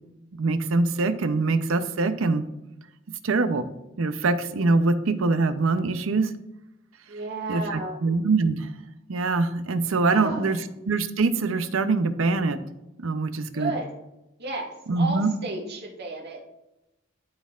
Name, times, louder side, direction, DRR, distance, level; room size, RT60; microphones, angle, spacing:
voice 1, 0.4-2.4 3.2-3.7 4.0-6.3 7.5-8.7 9.1-10.6 10.9-12.6 13.0-13.8 14.9-15.3, right 3 dB, 70° right, 11 dB, 0.6 m, -23 dB
voice 2, 7.1-8.0 10.1-10.6 13.5-13.9 14.4-16.4, right 2 dB, 55° right, -2 dB, 1.7 m, -33 dB
12.5 x 4.3 x 2.4 m, 0.93 s
head